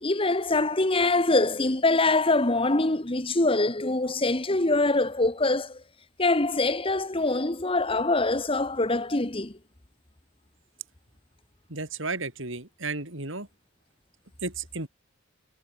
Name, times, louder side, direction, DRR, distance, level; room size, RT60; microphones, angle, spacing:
voice 1, 0.0-5.8 6.2-9.6, left 2 dB, 25° left, 1.3 m, -24 dB
voice 2, 11.7-13.5 14.4-14.9, right 3 dB, 60° right, 4.4 m, -33 dB
head